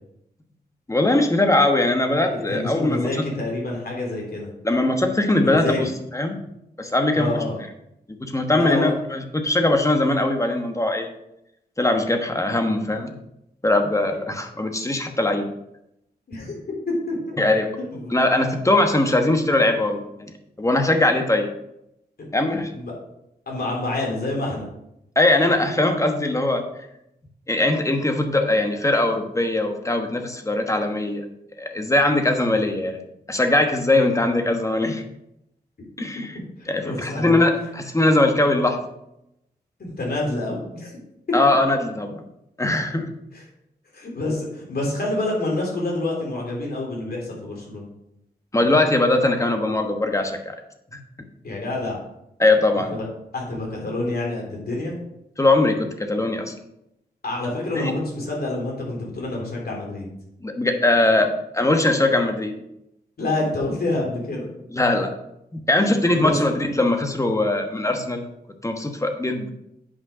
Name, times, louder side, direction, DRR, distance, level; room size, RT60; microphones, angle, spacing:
voice 1, 0.9-3.1 4.6-6.4 6.8-7.4 8.2-11.1 11.8-13.2 13.6-15.5 17.4-17.7 18.1-20.3 20.6-21.5 22.3-22.7 25.2-26.7 27.5-31.2 31.6-33.0 33.3-35.0 36.0-36.3 36.7-38.8 41.3-42.2 42.6-43.1 48.5-50.6 50.9-51.0 52.4-53.0 55.4-56.5 57.7-57.9 60.4-62.5 64.7-65.2 65.7-68.2 68.6-69.5, left 2 dB, 20° left, 5 dB, 1.2 m, -21 dB
voice 2, 2.3-4.5 5.4-5.9 7.1-7.6 8.5-8.9 16.3-16.5 17.1-17.4 17.9-18.1 22.7-22.9 23.5-24.7 36.6-37.4 39.8-40.9 43.3-43.4 43.9-47.9 51.4-52.0 52.9-53.1 53.3-55.0 57.2-60.1 63.2-64.5 65.8-66.4, left 2 dB, 65° left, -2 dB, 3.3 m, -27 dB
8.6 x 5.4 x 5.0 m, 0.83 s
wide cardioid pair, 90°, 17 cm